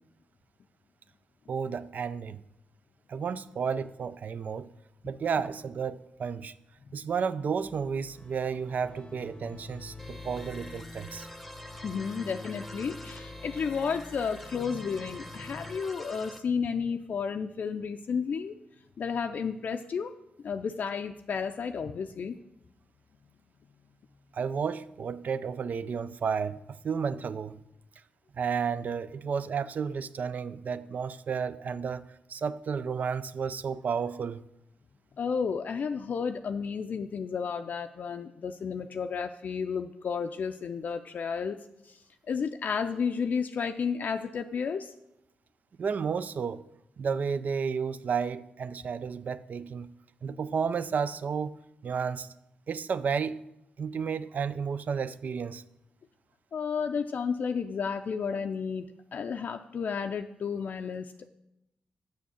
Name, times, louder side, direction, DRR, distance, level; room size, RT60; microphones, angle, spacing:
voice 1, 1.5-2.4 3.1-4.7 5.0-6.5 6.9-11.3 24.3-27.6 28.3-34.4 45.8-46.6 47.0-49.9 50.2-52.3 52.7-53.4 53.8-55.6, right 6 dB, 55° right, 0.4 m, -32 dB
sound 1, 7.6-15.8, left 3 dB, 30° left, 0.8 m, -46 dB
sound 2, 10.0-16.4, equal, ahead, 1.0 m, -46 dB
voice 2, 11.8-18.5 19.0-20.1 20.4-22.4 35.2-41.6 41.8-42.0 42.3-44.9 56.5-61.3, left 6 dB, 60° left, 0.4 m, -32 dB
6.4 x 6.4 x 6.9 m
supercardioid pair, 50°, 3 cm